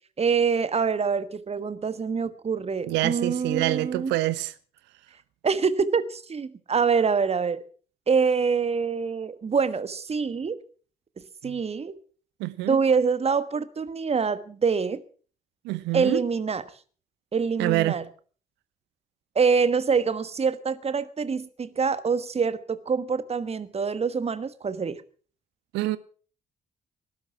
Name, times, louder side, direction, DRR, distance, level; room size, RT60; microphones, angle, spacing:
voice 1, 0.2-4.1 5.4-7.6 8.1-10.6 11.4-12.0 12.7-15.0 15.9-16.6 17.3-18.0 19.3-25.0, right 5 dB, 30° right, 1.3 m, -25 dB
voice 2, 2.9-4.5 11.4-11.6 12.4-12.8 15.6-16.2 17.6-18.0 25.7-26.0, right 17 dB, 60° right, 0.9 m, -26 dB
18.5 x 11.5 x 5.8 m
figure-of-eight pair, 40°, 20 cm